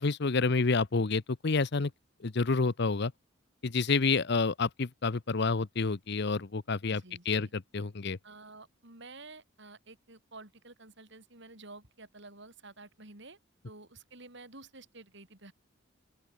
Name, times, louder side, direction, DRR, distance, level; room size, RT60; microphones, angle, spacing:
voice 1, 0.0-1.9 2.2-3.1 3.6-7.0 7.3-8.2, left 4 dB, 55° left, 0.8 m, -28 dB
voice 2, 6.9-7.5 8.2-13.4 13.6-15.5, right 3 dB, 60° right, 5.1 m, -51 dB
open air
head